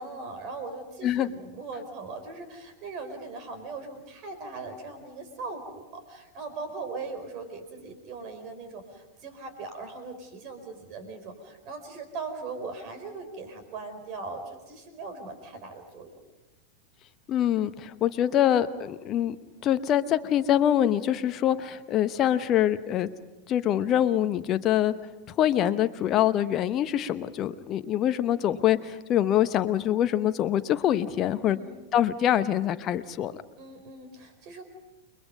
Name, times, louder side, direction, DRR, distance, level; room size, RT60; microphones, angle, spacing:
voice 1, 0.0-16.2 31.5-31.8 33.6-34.6, right 3 dB, 40° right, 8 dB, 4.6 m, -39 dB
voice 2, 17.3-19.4 19.6-23.1 23.5-24.9 25.4-31.6 31.9-33.3, left 11 dB, 30° left, 11 dB, 1.0 m, -24 dB
29.5 x 22.0 x 5.3 m, 1.1 s
figure-of-eight pair, 90°, 0 cm